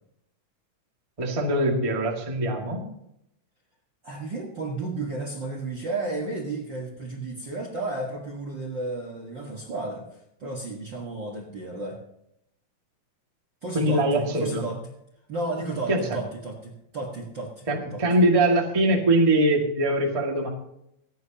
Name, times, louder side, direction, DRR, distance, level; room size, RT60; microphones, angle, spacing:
voice 1, 1.2-2.8 13.7-14.7 15.9-16.2 17.7-20.5, right 1 dB, 15° right, -1 dB, 1.3 m, -22 dB
voice 2, 4.0-10.1 10.4-12.0 13.6-14.8 15.3-18.0, right 2 dB, 45° right, 1 dB, 1.6 m, -33 dB
26.0 x 9.2 x 2.9 m, 0.78 s
omnidirectional pair, 3.9 m